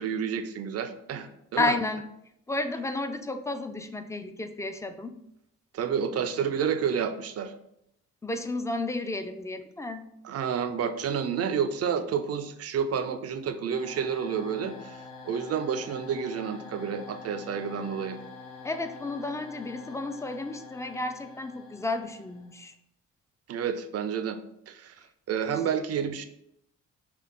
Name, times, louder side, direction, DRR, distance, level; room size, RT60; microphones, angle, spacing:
voice 1, 0.0-1.7 5.7-7.5 10.2-15.0 15.2-18.2 23.5-24.4 24.7-25.0 25.3-26.2, right 7 dB, 55° right, 10 dB, 0.5 m, -30 dB
voice 2, 1.6-2.0 2.5-5.2 8.2-10.0 18.6-22.7, left 2 dB, 10° left, 9 dB, 0.4 m, -32 dB
sound 1, 13.7-22.6, left 4 dB, 90° left, 0.9 m, -46 dB
5.7 x 2.3 x 3.6 m, 0.77 s
cardioid pair, 90°, 30 cm